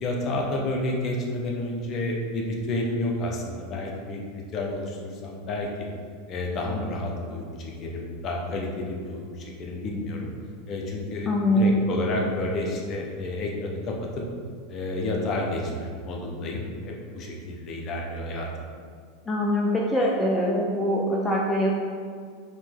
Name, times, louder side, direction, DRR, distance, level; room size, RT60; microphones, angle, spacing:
voice 1, 0.0-5.7 6.3-10.3 10.7-14.2 14.7-18.5, left 2 dB, 40° left, -1 dB, 0.9 m, -30 dB
voice 2, 11.3-11.9 19.3-21.7, equal, 15° left, -3 dB, 0.5 m, -23 dB
4.2 x 3.0 x 3.7 m, 2.1 s
hypercardioid pair, 95°, 0 cm